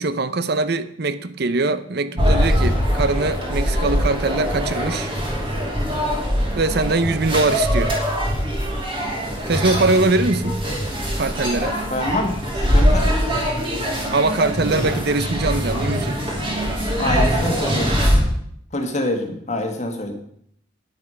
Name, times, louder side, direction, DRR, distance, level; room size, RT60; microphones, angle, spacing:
voice 1, 0.0-5.1 6.6-7.9 9.5-10.6 11.1-11.8 14.1-16.2, right 3 dB, 50° right, 14 dB, 0.6 m, -22 dB
sound 1, 2.2-18.2, equal, 25° right, 2.7 m, -22 dB
voice 2, 11.9-13.5 17.0-18.0 18.7-20.1, left 1 dB, 35° left, 4 dB, 1.5 m, -26 dB
9.8 x 7.9 x 5.5 m, 0.70 s
head